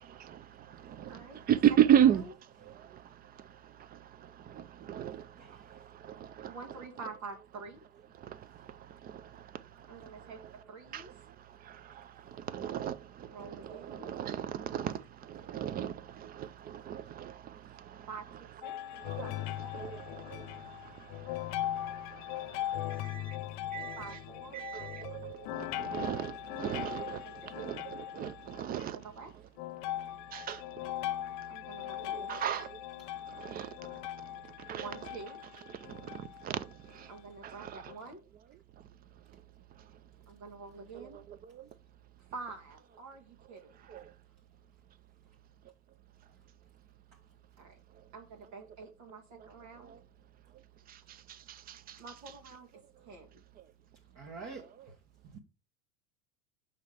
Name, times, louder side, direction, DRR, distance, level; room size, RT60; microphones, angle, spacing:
voice 1, 0.9-1.2 1.5-2.2 4.5-5.2 6.1-6.5 10.9-11.0 12.5-13.0 13.4-15.0 15.3-16.0 16.2-17.3 19.1-19.3 19.7-20.0 20.3-20.4 23.1-23.2 23.7-24.2 24.5-27.2 27.5-29.0 30.3-30.6 32.1-32.7 33.4-33.7 34.7-34.9 36.4-36.6 37.6-37.8 41.0-41.1 43.9-44.0, right 10 dB, 25° right, 0.4 m, -31 dB
voice 2, 6.2-7.8 9.9-11.1 13.3-14.1 18.1-18.7 19.1-19.9 23.8-24.6 26.9-27.8 28.9-29.3 31.5-32.4 34.7-35.4 37.1-38.2 40.3-41.2 42.3-43.9 47.6-47.8 48.1-49.9 52.0-52.7 53.0-53.3, right 4 dB, 70° right, 1.9 m, -47 dB
sound 1, 18.6-28.8 29.6-36.5 37.1-37.2 37.9-38.0, left 13 dB, 55° left, 0.5 m, -40 dB
voice 3, 54.2-54.7 55.2-55.4, right 4 dB, 40° right, 1.4 m, -45 dB
5.7 x 4.2 x 4.9 m
hypercardioid pair, 100°, 43 cm